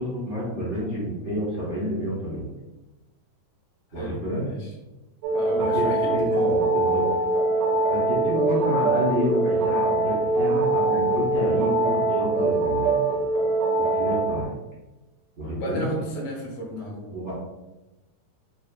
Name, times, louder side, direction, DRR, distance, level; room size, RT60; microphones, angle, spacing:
voice 1, 0.0-2.5 3.9-4.4 5.5-5.8 6.1-7.1 7.9-13.0 13.8-14.5 15.4-15.8 17.1-17.3, equal, 55° right, -9 dB, 0.7 m, -29 dB
sound 1, 5.2-14.4, right 2 dB, 80° right, 1.5 m, -23 dB
voice 2, 5.3-6.1 15.6-17.1, right 1 dB, 75° left, -3 dB, 2.5 m, -33 dB
6.0 x 2.4 x 2.4 m, 1.0 s
omnidirectional pair, 3.6 m